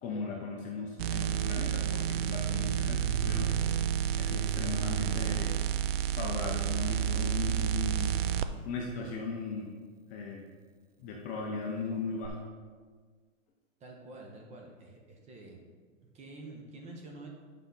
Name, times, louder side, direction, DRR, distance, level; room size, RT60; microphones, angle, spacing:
voice 1, 0.0-3.7 4.2-5.6 6.1-8.2 8.6-9.8 10.1-10.4 11.0-12.4, left 4 dB, 20° left, -1 dB, 0.6 m, -37 dB
sound 1, 1.0-8.5 12.2-12.3, right 10 dB, 50° right, 0.4 m, -30 dB
voice 2, 13.8-15.6 16.1-17.3, right 2 dB, 15° right, 1 dB, 0.9 m, -48 dB
8.3 x 5.7 x 3.9 m, 1.5 s
hypercardioid pair, 145°, 39 cm